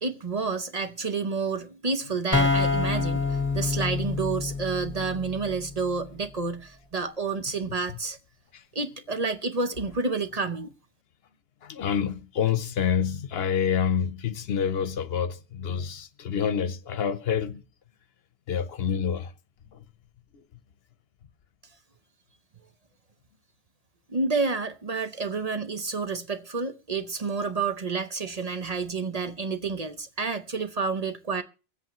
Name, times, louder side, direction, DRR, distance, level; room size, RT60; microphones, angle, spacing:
voice 1, 0.0-8.2 8.7-10.7 24.1-31.4, right 4 dB, 40° right, 0.8 m, -29 dB
sound 1, 2.3-6.0, left 3 dB, 10° left, 1.8 m, -27 dB
voice 2, 11.6-17.6 18.5-19.3 19.7-19.8 20.3-20.4, left 7 dB, 70° left, 1.0 m, -27 dB
24.0 x 8.0 x 3.0 m
omnidirectional pair, 1.1 m